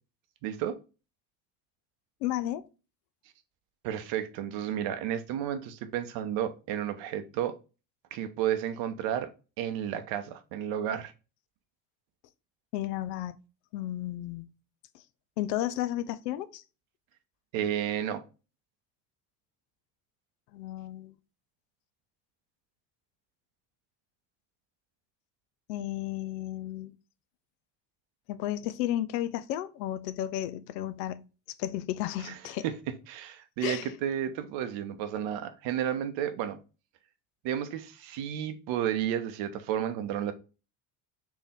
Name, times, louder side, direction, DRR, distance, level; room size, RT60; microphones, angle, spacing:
voice 1, 0.4-0.8 3.8-7.6 8.1-9.3 9.6-11.1 17.5-18.2 32.2-32.3 32.6-32.8 33.1-36.6 37.4-40.3, right 10 dB, 65° right, 0.9 m, -32 dB
voice 2, 2.2-2.7 12.7-13.3 13.7-14.5 15.4-16.6 20.5-21.1 25.7-26.9 28.3-31.3 31.6-32.7 33.6-33.9, left 13 dB, 75° left, 0.6 m, -33 dB
4.6 x 2.7 x 3.4 m
hypercardioid pair, 65°, 50 cm